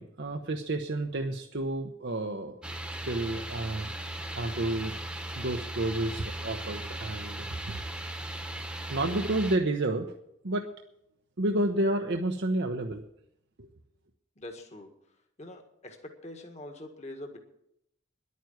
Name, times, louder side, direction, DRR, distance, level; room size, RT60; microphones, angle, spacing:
voice 1, 0.0-2.6 3.1-3.9 4.4-4.9 5.3-7.8 8.9-10.1 10.4-10.7 11.4-13.0 13.6-13.7, right 1 dB, 60° right, 4 dB, 0.9 m, -30 dB
sound 1, 2.6-9.6, right 1 dB, 5° right, 1.2 m, -38 dB
voice 2, 8.9-9.3 14.4-14.9 15.4-17.4, left 1 dB, 35° left, 4 dB, 1.7 m, -44 dB
11.0 x 9.4 x 9.3 m, 0.79 s
head